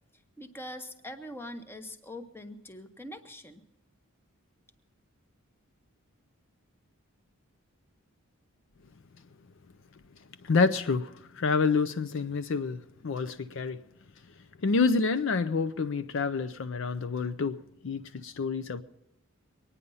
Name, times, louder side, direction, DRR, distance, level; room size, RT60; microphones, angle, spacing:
voice 1, 0.4-3.6, left 1 dB, 10° left, 0.8 m, -43 dB
voice 2, 10.4-13.8 14.6-18.8, left 4 dB, 55° left, 0.5 m, -28 dB
22.5 x 9.7 x 5.5 m
head